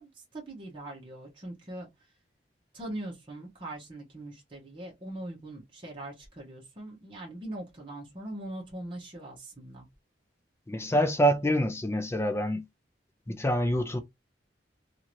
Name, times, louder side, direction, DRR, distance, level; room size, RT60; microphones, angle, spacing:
voice 1, 0.0-1.9 2.7-9.9, right 1 dB, 30° right, 0.9 m, -41 dB
voice 2, 10.7-12.6 13.3-14.0, equal, 15° left, 0.4 m, -26 dB
2.8 x 2.5 x 3.0 m
head